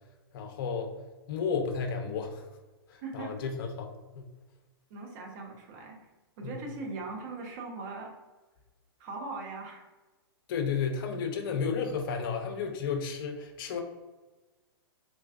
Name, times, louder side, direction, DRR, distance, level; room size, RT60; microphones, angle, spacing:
voice 1, 0.3-0.9 1.3-2.5 2.9-4.3 6.4-6.6 10.5-13.8, left 6 dB, 55° left, 4 dB, 0.6 m, -32 dB
voice 2, 3.0-3.3 4.9-6.0 6.4-8.2 9.0-9.9, right 3 dB, 45° right, 0 dB, 0.9 m, -40 dB
3.8 x 2.3 x 2.4 m, 1.2 s
hypercardioid pair, 135°, 14 cm